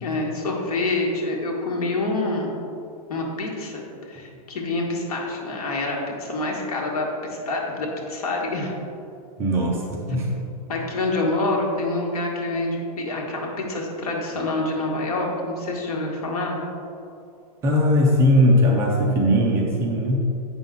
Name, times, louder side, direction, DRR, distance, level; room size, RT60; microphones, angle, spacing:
voice 1, 0.0-2.5 3.1-8.7 10.7-16.6, left 2 dB, 70° left, -1 dB, 1.7 m, -27 dB
voice 2, 9.4-10.3 17.6-20.2, equal, 15° right, -1 dB, 0.5 m, -19 dB
8.0 x 5.7 x 3.8 m, 2.7 s
supercardioid pair, 170°, 19 cm